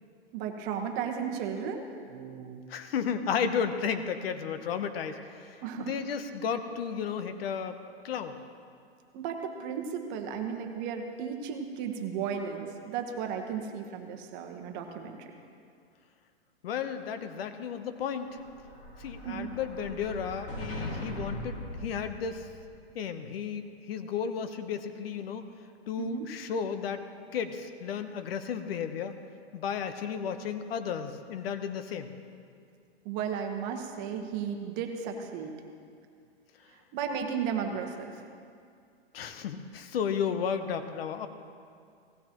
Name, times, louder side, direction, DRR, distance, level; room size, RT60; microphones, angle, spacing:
voice 1, 0.3-2.6 5.6-6.0 9.1-15.3 19.2-19.5 26.0-26.3 33.0-35.5 36.7-38.2, right 7 dB, 30° right, 3 dB, 1.3 m, -35 dB
voice 2, 2.7-7.8 8.0-8.3 16.6-18.3 19.0-21.6 21.8-22.5 22.9-25.4 25.9-27.0 27.3-29.1 29.5-32.1 39.1-41.3, left 7 dB, 65° left, 8 dB, 1.0 m, -33 dB
Explosion, 18.0-22.7, equal, 25° left, 2.0 m, -40 dB
17.5 x 15.5 x 3.0 m, 2.3 s
hypercardioid pair, 145°, 32 cm